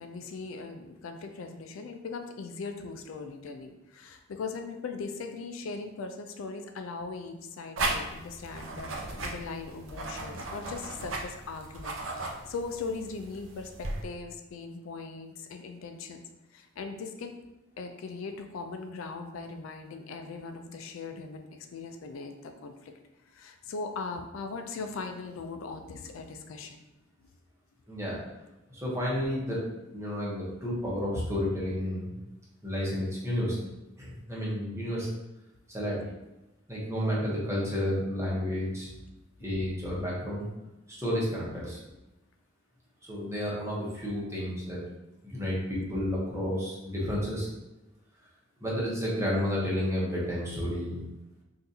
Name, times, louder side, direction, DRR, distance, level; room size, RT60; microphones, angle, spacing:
voice 1, 0.0-16.2 16.5-17.4 17.8-22.9 23.3-26.8, left 4 dB, 80° left, 5 dB, 0.4 m, -39 dB
sound 1, 7.8-14.0, right 2 dB, 85° right, 0.6 m, -36 dB
voice 2, 27.9-28.2 28.7-29.6 29.9-32.2 32.6-33.6 34.0-35.1 35.7-36.0 36.7-38.9 39.4-40.5 40.9-41.8 43.1-44.8 45.2-47.5 48.6-51.0, equal, 15° right, -6 dB, 1.0 m, -31 dB
3.8 x 2.5 x 2.7 m, 1.0 s
head